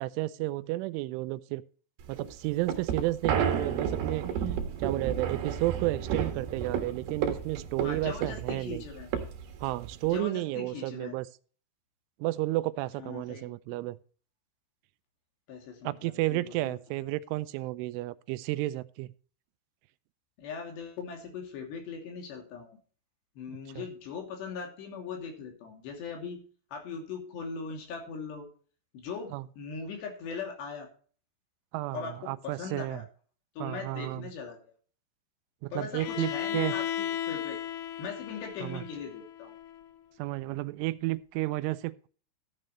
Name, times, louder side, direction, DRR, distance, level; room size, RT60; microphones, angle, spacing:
voice 1, 0.0-1.6 2.1-4.2 4.8-8.8 9.6-11.3 12.2-14.0 15.8-19.1 23.8-23.9 29.3-29.5 31.7-33.0 33.6-34.3 35.6-36.8 38.6-38.8 40.2-42.1, right 18 dB, 85° right, 3.1 m, -32 dB
sound 1, 2.0-10.2, right 8 dB, 65° right, 3.2 m, -32 dB
voice 2, 7.8-9.1 10.0-11.2 13.0-13.8 15.5-16.8 20.4-22.8 23.4-26.4 26.7-28.5 28.9-30.9 31.9-33.1 33.6-34.7 35.7-37.6 38.0-39.6, left 5 dB, 65° left, 4.7 m, -40 dB
Bowed string instrument, 36.0-39.9, left 10 dB, 85° left, 2.1 m, -35 dB
14.5 x 9.1 x 3.1 m
omnidirectional pair, 5.5 m